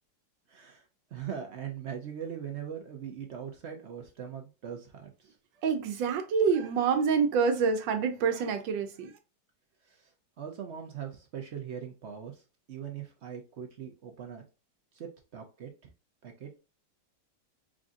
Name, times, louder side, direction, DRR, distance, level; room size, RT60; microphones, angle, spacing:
voice 1, 0.5-5.4 9.8-10.1 10.4-12.4 12.7-14.4 14.9-15.9 16.2-16.6, right 8 dB, 65° right, 0.6 m, -41 dB
voice 2, 5.6-9.1, right 6 dB, 85° right, 1.5 m, -27 dB
4.9 x 2.5 x 2.5 m
omnidirectional pair, 2.0 m